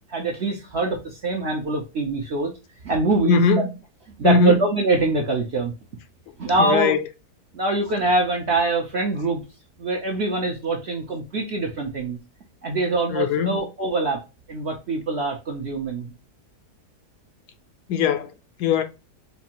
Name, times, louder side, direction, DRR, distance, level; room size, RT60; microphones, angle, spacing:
voice 1, 0.1-2.5 2.8-3.4 4.2-5.7 6.4-7.0 7.5-9.4 9.8-12.2 12.6-14.2 14.5-16.1, right 3 dB, 60° right, 0.7 m, -24 dB
voice 2, 3.3-3.7 4.2-4.6 6.6-7.0 13.1-13.7 17.9-18.3 18.6-18.8, left 5 dB, 75° left, 1.1 m, -20 dB
4.4 x 2.5 x 2.9 m
omnidirectional pair, 1.8 m